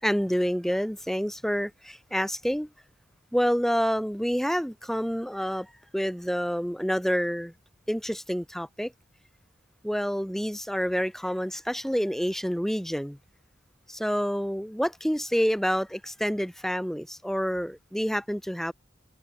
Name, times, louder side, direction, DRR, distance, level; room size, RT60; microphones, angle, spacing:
voice 1, 0.0-2.7 3.3-5.7 5.9-7.5 7.9-8.9 9.8-13.2 13.9-18.7, equal, ahead, 3.6 m, -28 dB
head